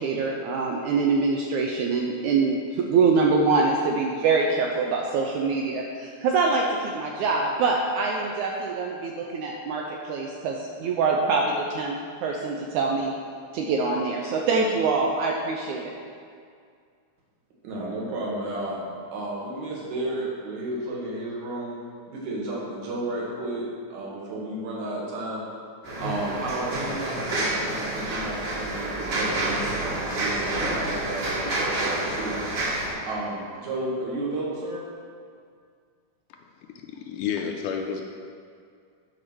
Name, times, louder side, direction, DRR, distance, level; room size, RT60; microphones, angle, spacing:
voice 1, 0.0-13.1 13.5-15.9, right 4 dB, 80° right, 0 dB, 1.8 m, -24 dB
voice 2, 17.6-21.8 22.1-25.4 26.0-32.5 33.0-34.8, right 1 dB, 60° right, -4 dB, 2.9 m, -32 dB
sound 1, 25.8-32.9, right 1 dB, 45° right, 2.7 m, -28 dB
voice 3, 36.7-38.0, left 7 dB, 80° left, 3 dB, 1.9 m, -30 dB
9.8 x 4.8 x 6.1 m, 2.2 s
omnidirectional pair, 4.0 m